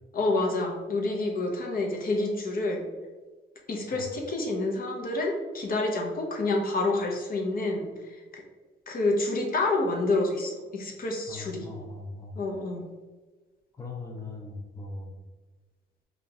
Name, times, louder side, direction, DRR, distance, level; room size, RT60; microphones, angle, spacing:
voice 1, 0.1-2.9 3.7-8.4 8.9-11.7 12.4-12.8, left 2 dB, 45° left, 1 dB, 0.7 m, -28 dB
voice 2, 11.3-12.4 13.8-15.1, left 3 dB, 15° left, -1 dB, 0.7 m, -40 dB
3.8 x 2.4 x 3.3 m, 1.3 s
cardioid pair, 90°, 20 cm